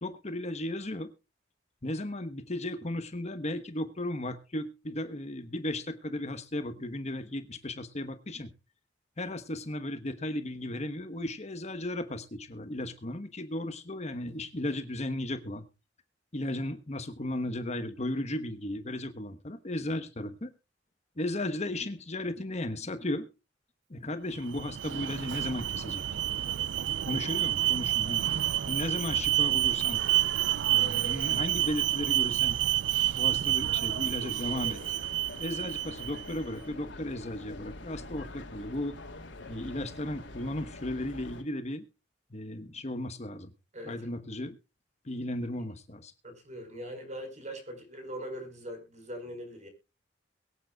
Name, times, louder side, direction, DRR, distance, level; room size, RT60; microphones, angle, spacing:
voice 1, 0.0-1.1 1.8-8.5 9.2-15.7 16.3-20.5 21.2-23.3 23.9-26.0 27.0-28.2 28.7-30.0 30.7-32.6 33.2-34.8 35.4-39.0 39.5-41.8 42.3-43.5 43.8-44.6 45.0-46.1, left 1 dB, 40° left, 10 dB, 1.2 m, -35 dB
Alarm, 24.3-36.4, right 13 dB, 80° right, 0.5 m, -29 dB
sound 1, 34.4-41.4, left 2 dB, 90° left, 2.6 m, -45 dB
voice 2, 43.7-44.1 46.2-49.7, equal, 40° right, 8 dB, 4.8 m, -41 dB
22.5 x 9.0 x 2.3 m, 0.29 s
head